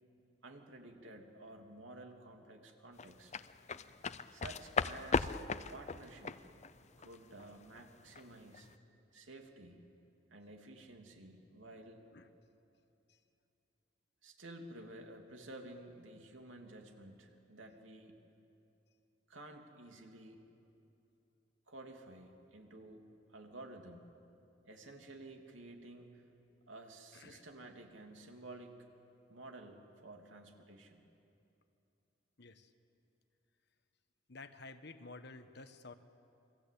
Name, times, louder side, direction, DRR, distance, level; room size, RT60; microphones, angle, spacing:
voice 1, 0.4-3.4 4.3-5.3 5.7-6.4 7.0-8.7 9.1-9.9 10.3-12.0 14.2-18.2 19.3-20.4 21.7-24.1 24.6-26.3 26.7-28.8 29.3-31.0, right 2 dB, 85° right, 3 dB, 3.0 m, -52 dB
sound 1, 3.0-8.2 8.5-8.7, left 4 dB, 35° left, 0.6 m, -37 dB
voice 2, 34.3-35.9, left 3 dB, 60° left, 9 dB, 1.3 m, -51 dB
29.0 x 23.0 x 8.5 m, 2.7 s
head